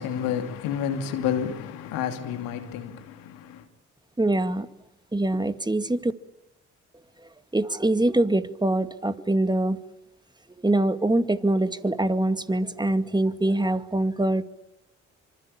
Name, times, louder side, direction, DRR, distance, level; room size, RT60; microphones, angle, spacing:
voice 1, 0.0-3.6, left 8 dB, 85° left, 2.8 m, -30 dB
voice 2, 4.2-4.7 5.1-6.1 7.5-9.8 10.6-14.4, right 1 dB, 15° right, 2.2 m, -24 dB
26.0 x 25.5 x 8.8 m
hypercardioid pair, 50°, 33 cm